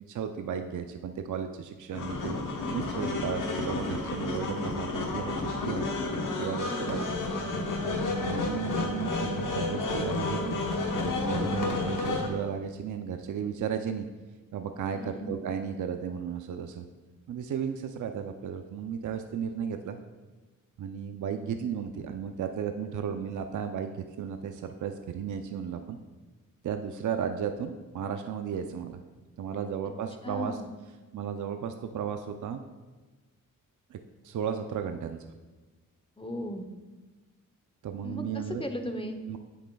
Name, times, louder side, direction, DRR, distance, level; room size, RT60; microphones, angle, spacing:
voice 1, 0.1-5.8 6.4-7.1 8.2-10.6 10.9-14.1 14.5-16.8 17.3-20.0 20.8-26.0 26.6-29.0 29.4-30.6 31.1-32.6 33.9-34.0 34.2-35.2 37.8-38.6 39.3-39.4, right 7 dB, 60° right, 7 dB, 0.5 m, -34 dB
sound 1, 1.9-12.3, left 2 dB, 65° left, 1.1 m, -31 dB
voice 2, 6.7-7.1 7.8-8.0 14.9-15.4 30.2-30.7 36.2-36.7 38.0-39.2, left 1 dB, 15° left, 6 dB, 0.8 m, -36 dB
9.3 x 7.2 x 2.3 m, 1.3 s
cardioid pair, 70°, 34 cm